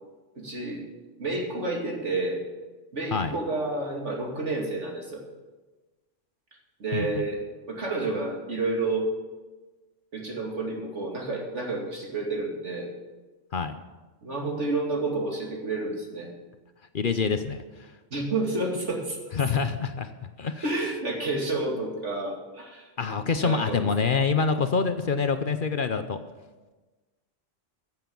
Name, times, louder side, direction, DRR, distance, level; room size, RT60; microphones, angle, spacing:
voice 1, 0.3-0.8 1.2-2.4 2.9-5.2 6.8-7.4 7.7-9.1 10.1-12.9 14.2-16.3 18.1-19.2 20.6-22.9 23.4-23.9, right 2 dB, 75° right, -1 dB, 2.9 m, -30 dB
voice 2, 6.9-7.2 13.5-13.8 16.9-17.6 19.4-20.1 20.4-20.6 23.0-26.2, left 5 dB, 50° left, 9 dB, 0.8 m, -26 dB
15.0 x 7.7 x 7.1 m, 1.2 s
omnidirectional pair, 1.2 m